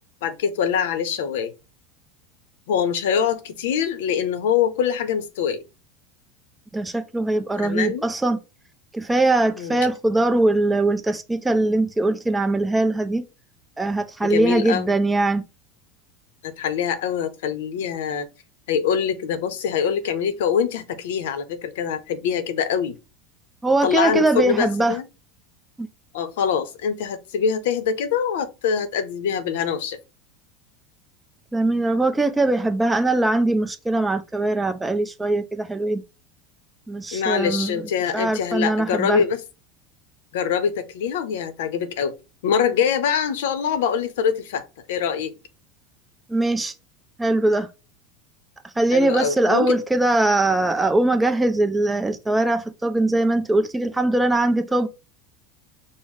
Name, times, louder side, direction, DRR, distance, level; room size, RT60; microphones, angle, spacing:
voice 1, 0.2-1.5 2.7-5.6 7.6-8.1 9.6-9.9 14.2-14.9 16.4-18.3 18.7-23.0 23.8-25.1 26.1-30.0 37.1-39.4 40.3-42.1 42.4-45.4 48.9-49.8, left 7 dB, 85° left, 0.6 m, -24 dB
voice 2, 6.7-8.4 8.9-13.3 13.8-15.4 23.6-25.0 25.8-25.9 31.5-36.0 36.9-37.8 38.1-39.2 46.3-46.7 47.2-47.7 48.8-54.9, right 2 dB, 10° right, 0.4 m, -21 dB
5.3 x 2.1 x 3.1 m
supercardioid pair, 140°, 0 cm